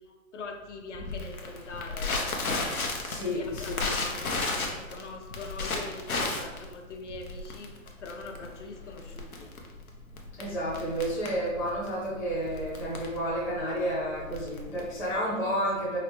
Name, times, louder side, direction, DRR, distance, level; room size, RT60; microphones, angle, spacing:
voice 1, 0.3-2.1 3.3-9.5, left 3 dB, 60° left, 3 dB, 0.8 m, -42 dB
Crackle, 0.9-15.1, left 3 dB, 90° left, 1.0 m, -34 dB
voice 2, 3.0-3.7 10.4-16.0, equal, 5° left, -10 dB, 0.5 m, -31 dB
4.9 x 2.9 x 3.2 m, 1.2 s
hypercardioid pair, 145°, 42 cm